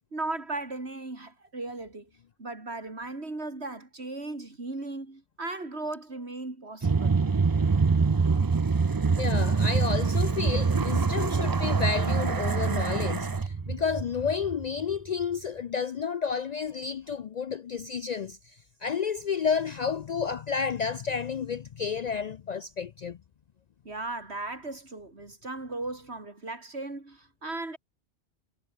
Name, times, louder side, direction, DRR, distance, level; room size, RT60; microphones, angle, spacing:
voice 1, 0.1-2.1 2.4-7.2 23.8-27.8, right 2 dB, 75° right, 4.1 m, -37 dB
sound 1, 6.8-15.0, right 4 dB, 30° right, 0.4 m, -25 dB
voice 2, 9.2-23.2, left 6 dB, 55° left, 0.5 m, -31 dB
omnidirectional pair, 1.1 m